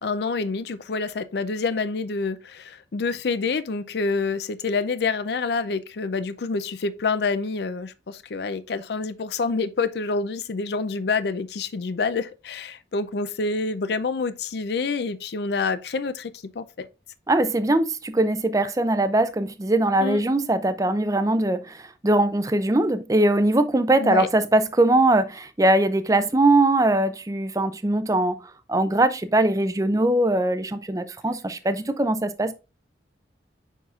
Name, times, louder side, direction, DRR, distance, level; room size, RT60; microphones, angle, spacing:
voice 1, 0.0-16.9 20.0-20.2 24.0-24.3, left 4 dB, 60° left, 0.4 m, -27 dB
voice 2, 17.3-28.4 28.7-32.5, right 1 dB, 20° right, 0.5 m, -21 dB
7.1 x 5.7 x 2.4 m
head